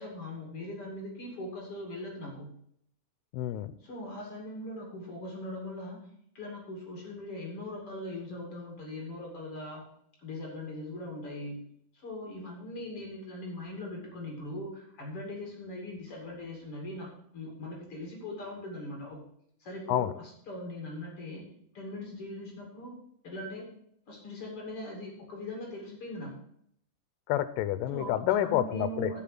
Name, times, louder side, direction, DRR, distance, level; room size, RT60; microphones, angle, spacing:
voice 1, 0.0-2.5 3.8-6.1 6.3-9.8 10.2-11.6 11.9-19.2 19.6-21.5 21.7-23.0 23.2-23.7 24.1-26.4 27.9-29.2, left 1 dB, 40° left, -1 dB, 3.0 m, -40 dB
voice 2, 3.3-3.7 19.9-20.1 27.3-29.1, left 12 dB, 85° left, 14 dB, 2.6 m, -28 dB
7.4 x 7.4 x 7.6 m, 0.68 s
omnidirectional pair, 4.8 m